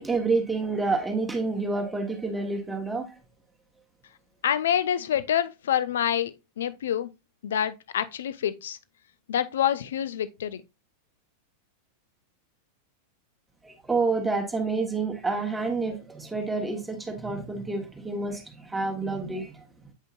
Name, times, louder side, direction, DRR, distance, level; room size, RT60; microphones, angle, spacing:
voice 1, 0.0-3.1 13.6-19.6, right 3 dB, 10° right, 1.3 m, -28 dB
voice 2, 4.4-7.1 7.4-8.8 9.3-10.6, left 10 dB, 60° left, 0.5 m, -27 dB
8.3 x 5.1 x 2.4 m
figure-of-eight pair, 90°, 0 cm